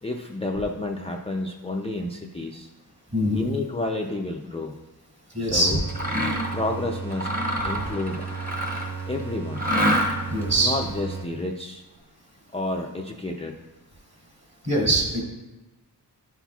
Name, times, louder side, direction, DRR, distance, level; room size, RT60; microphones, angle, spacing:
voice 1, 0.0-2.7 3.3-4.8 5.4-5.8 6.5-7.3 7.6-8.3 9.1-9.7 10.6-11.8 12.5-13.5, left 2 dB, 15° left, 1 dB, 0.4 m, -30 dB
voice 2, 3.1-3.5 5.3-5.7 10.3-10.8 14.6-15.2, right 1 dB, 40° right, -3 dB, 2.2 m, -22 dB
sound 1, 5.5-11.6, right 6 dB, 65° right, 1.0 m, -35 dB
Mechanisms, 5.9-6.6 7.1-9.0 9.5-10.4, equal, 20° right, 1.1 m, -26 dB
11.5 x 5.8 x 2.3 m, 1.2 s
wide cardioid pair, 95°, 42 cm